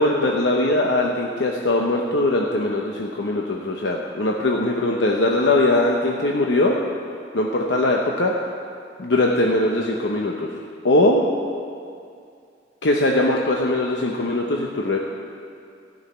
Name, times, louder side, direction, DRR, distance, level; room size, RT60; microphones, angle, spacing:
voice 1, 0.0-6.7 7.3-8.3 9.0-10.5 10.8-11.2 12.8-15.0, left 2 dB, 70° left, 0 dB, 0.9 m, -21 dB
13.0 x 6.5 x 9.1 m, 2.4 s
head